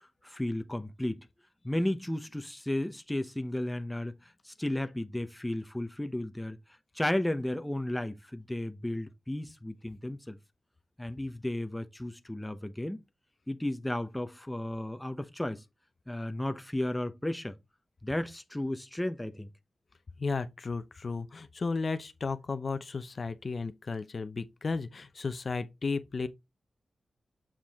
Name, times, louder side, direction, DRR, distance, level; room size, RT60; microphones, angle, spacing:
voice 1, 0.2-1.3 1.6-4.2 4.4-6.6 6.9-10.4 11.0-13.0 13.5-15.6 16.1-17.6 18.0-19.5, left 1 dB, 10° left, 0.8 m, -33 dB
voice 2, 20.2-26.3, left 4 dB, 50° left, 0.7 m, -34 dB
7.4 x 4.8 x 3.5 m
wide cardioid pair, 95°, 0 cm